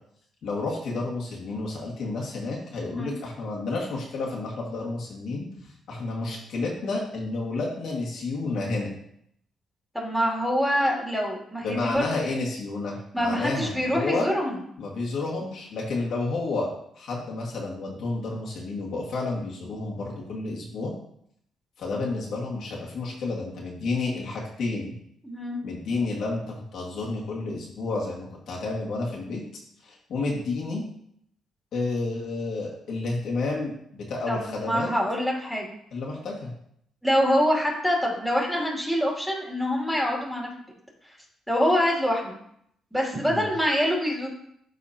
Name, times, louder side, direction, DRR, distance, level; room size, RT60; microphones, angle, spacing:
voice 1, 0.4-5.5 5.9-8.9 11.6-14.3 14.8-16.7 17.0-20.9 21.8-24.9 25.6-29.4 29.8-30.8 31.7-34.9 35.9-36.5 43.3-43.5, left 3 dB, 70° left, -4 dB, 2.0 m, -30 dB
voice 2, 9.9-12.0 13.1-14.5 25.2-25.6 34.3-35.7 37.0-40.5 41.5-42.4 42.9-44.3, equal, ahead, -3 dB, 2.7 m, -25 dB
12.0 x 4.2 x 2.9 m, 0.71 s
cardioid pair, 90°, 0 cm